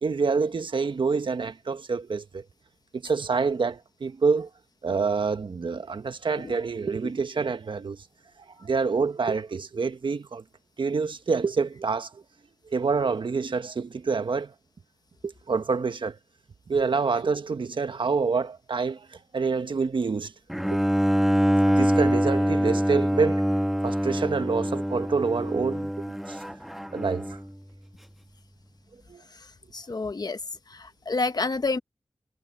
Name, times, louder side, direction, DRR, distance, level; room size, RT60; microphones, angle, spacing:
voice 1, 0.0-2.4 2.9-4.5 4.8-8.0 8.6-10.4 10.8-12.1 12.7-14.5 15.2-16.2 16.7-19.0 19.3-20.3 20.7-20.8 21.7-23.4 23.8-25.9 26.3-26.4 26.9-27.3 29.1-29.2, right 4 dB, 65° right, 1.4 m, -27 dB
Bowed string instrument, 20.5-27.5, equal, ahead, 1.2 m, -25 dB
voice 2, 29.7-30.4 30.7-31.8, left 3 dB, 50° left, 1.3 m, -29 dB
cardioid pair, 50°, 9 cm